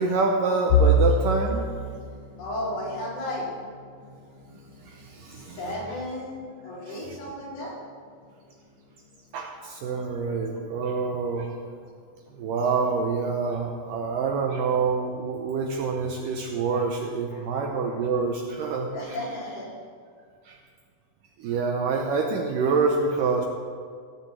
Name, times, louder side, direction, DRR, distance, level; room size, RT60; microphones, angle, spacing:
voice 1, 0.0-1.7 4.9-5.6 6.9-7.0 9.3-11.5 12.3-18.9 20.5-20.6 21.4-23.4, right 4 dB, 75° right, 2 dB, 2.0 m, -26 dB
sound 1, 0.7-12.5 13.0-13.2 13.6-13.8 14.6-15.1, equal, 65° left, 2.7 m, -31 dB
voice 2, 2.4-3.5 5.3-7.8 17.3-17.9 18.9-19.7, left 1 dB, 85° left, -7 dB, 6.4 m, -34 dB
16.5 x 6.6 x 7.5 m, 2.1 s
omnidirectional pair, 4.7 m